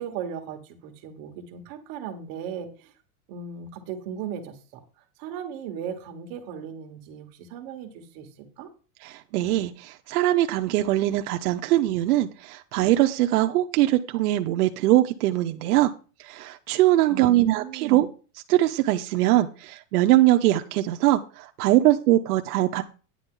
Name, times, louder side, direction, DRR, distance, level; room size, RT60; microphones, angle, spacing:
voice 1, 0.0-2.9 3.3-4.8 5.2-8.7 17.1-18.1, right 8 dB, 45° right, 6 dB, 1.4 m, -37 dB
voice 2, 9.0-15.9 16.2-18.1 18.5-22.8, right 15 dB, 85° right, 5 dB, 0.8 m, -22 dB
10.0 x 8.6 x 3.8 m, 0.36 s
supercardioid pair, 165°, 44 cm